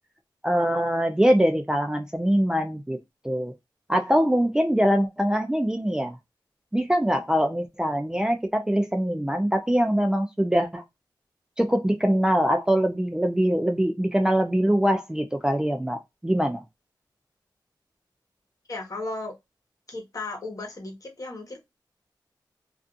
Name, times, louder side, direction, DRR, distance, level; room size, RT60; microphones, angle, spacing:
voice 1, 0.4-3.0 3.2-3.5 3.9-6.2 6.7-10.8 11.6-16.6, equal, 10° right, 0.3 m, -23 dB
voice 2, 18.7-19.4 19.9-21.6, left 2 dB, 45° left, 1.1 m, -35 dB
2.4 x 2.4 x 2.5 m
wide cardioid pair, 95°, 8 cm